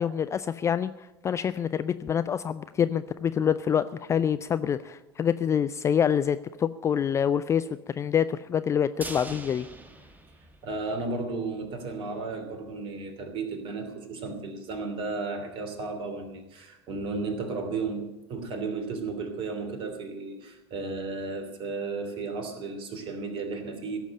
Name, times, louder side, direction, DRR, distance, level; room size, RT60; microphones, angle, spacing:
voice 1, 0.0-7.7 8.0-9.7, left 8 dB, 20° left, 12 dB, 0.4 m, -26 dB
sound 1, 9.0-11.2 11.5-11.6 11.9-12.0, right 2 dB, 10° right, 1.2 m, -43 dB
voice 2, 10.6-24.0, right 3 dB, 35° right, 6 dB, 3.0 m, -34 dB
16.5 x 7.2 x 9.9 m, 0.97 s
figure-of-eight pair, 80°, 14 cm